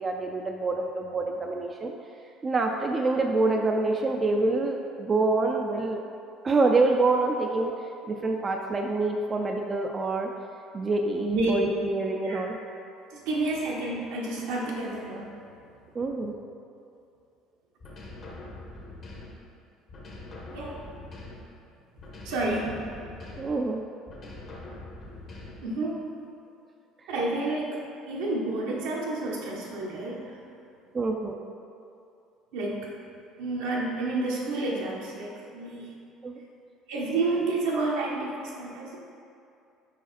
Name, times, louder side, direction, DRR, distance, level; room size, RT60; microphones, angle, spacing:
voice 1, 0.0-1.9 2.4-6.0 6.4-7.7 8.1-10.3 10.7-12.6 15.9-16.3 23.4-23.8 30.9-31.4 36.2-36.3, right 3 dB, 30° right, 2 dB, 0.4 m, -26 dB
voice 2, 13.1-15.3 20.5-20.9 22.2-22.7 25.6-26.1 27.1-30.4 32.5-32.9 33.4-35.9 36.9-39.0, right 2 dB, 85° right, -3 dB, 1.1 m, -30 dB
sound 1, 17.8-19.5 19.9-21.6 22.0-23.7 24.1-25.8, left 2 dB, 45° left, 1.2 m, -43 dB
5.0 x 4.9 x 4.2 m, 2.6 s
supercardioid pair, 85°, 0 cm